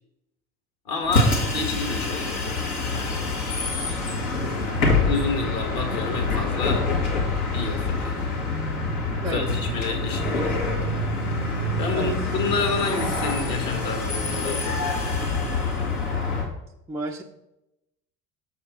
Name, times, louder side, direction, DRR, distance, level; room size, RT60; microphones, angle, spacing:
voice 1, 0.9-3.3 4.9-6.9 7.5-8.2 9.3-10.7 11.8-14.8, left 4 dB, 50° left, 3 dB, 1.9 m, -29 dB
Bus, 1.0-16.5, left 2 dB, 70° left, 1.7 m, -26 dB
voice 2, 16.9-17.2, right 3 dB, 5° right, 0 dB, 0.4 m, -31 dB
6.8 x 6.3 x 4.3 m, 0.88 s
figure-of-eight pair, 65°, 45 cm